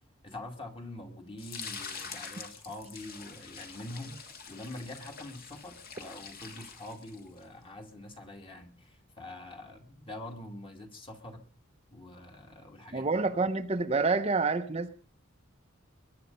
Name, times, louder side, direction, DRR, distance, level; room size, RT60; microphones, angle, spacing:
voice 1, 0.2-11.5 11.9-13.1, left 1 dB, 25° left, 4 dB, 2.3 m, -45 dB
sound 1, 1.4-7.4, left 5 dB, 50° left, 2.4 m, -45 dB
voice 2, 12.9-14.9, right 4 dB, 30° right, 7 dB, 0.8 m, -28 dB
21.5 x 9.8 x 5.4 m, 0.43 s
head